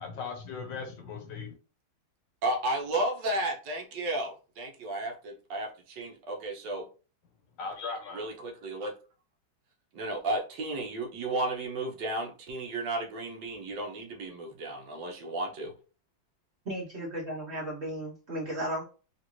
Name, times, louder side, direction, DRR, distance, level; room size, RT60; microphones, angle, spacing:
voice 1, 0.0-1.6 7.6-8.3, left 5 dB, 70° left, 4 dB, 1.5 m, -38 dB
voice 2, 2.4-6.9 8.1-8.9 9.9-15.7, right 2 dB, 70° right, 1 dB, 1.4 m, -33 dB
voice 3, 16.6-18.8, right 1 dB, 45° right, -5 dB, 0.9 m, -35 dB
3.9 x 2.5 x 3.0 m, 0.36 s
omnidirectional pair, 2.2 m